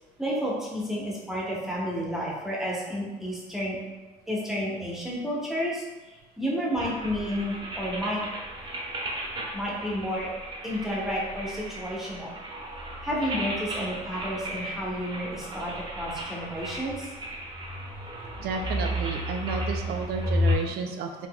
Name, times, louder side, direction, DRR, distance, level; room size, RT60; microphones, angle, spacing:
voice 1, 0.2-3.8 4.3-5.8 6.4-8.2 9.5-10.3 10.6-12.3 13.0-17.1, equal, ahead, -5 dB, 0.9 m, -31 dB
sound 1, 6.7-20.6, equal, 30° right, 0.8 m, -33 dB
voice 2, 18.4-21.3, right 4 dB, 65° right, 4 dB, 0.5 m, -32 dB
3.7 x 2.8 x 2.2 m, 1.2 s
cardioid pair, 110°, 17 cm